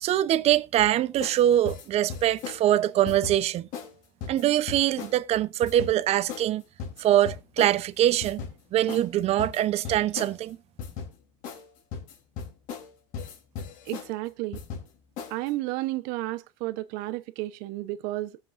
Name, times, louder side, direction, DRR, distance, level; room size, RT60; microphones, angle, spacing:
voice 1, 0.0-3.7 4.3-6.6 7.0-8.4 8.7-10.6, right 12 dB, 45° right, 0.8 m, -23 dB
sound 1, 1.2-1.4 1.7-2.6 3.1-3.4 3.7-3.9 4.2-5.1 5.6-5.9 6.3-6.5 6.8-7.8 8.2-8.6 8.9-9.1 9.4-10.4 10.8-11.1 11.4-11.7 11.9-12.9 13.1-14.1 14.5-14.9 15.2-15.5, left 6 dB, 65° left, 3.5 m, -37 dB
voice 2, 13.9-14.6 15.3-18.4, right 18 dB, 70° right, 1.0 m, -32 dB
20.0 x 7.7 x 2.6 m
supercardioid pair, 120°, 15 cm